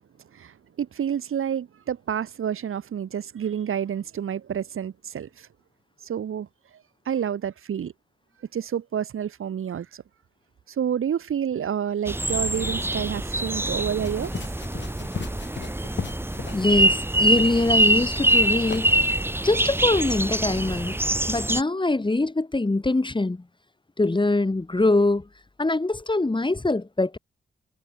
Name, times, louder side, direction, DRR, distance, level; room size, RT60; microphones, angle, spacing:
voice 1, 0.3-5.5 6.0-6.5 7.1-7.9 8.5-10.0 10.7-14.3, right 8 dB, 85° right, 6.1 m, -29 dB
sound 1, 12.1-21.6, right 1 dB, 10° right, 1.7 m, -24 dB
sound 2, 14.0-17.1 17.4-17.7 18.0-18.4 18.7-18.9, left 6 dB, 60° left, 2.9 m, -37 dB
voice 2, 16.5-18.9 19.4-21.0 21.3-23.4 24.0-25.2 25.6-27.2, left 2 dB, 25° left, 2.9 m, -23 dB
cardioid pair, 70°, 21 cm